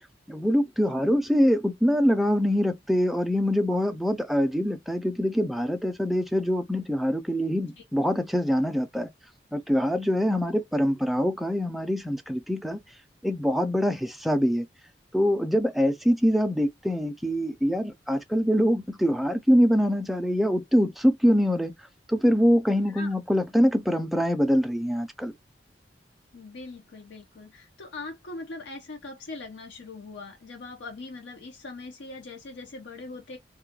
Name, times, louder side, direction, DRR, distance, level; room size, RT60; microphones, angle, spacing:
voice 1, 0.3-9.1 9.5-12.8 13.2-14.7 15.1-21.7 22.1-25.3, equal, ahead, 0.3 m, -24 dB
voice 2, 26.3-33.4, left 3 dB, 85° left, 0.6 m, -41 dB
2.3 x 2.2 x 2.7 m
head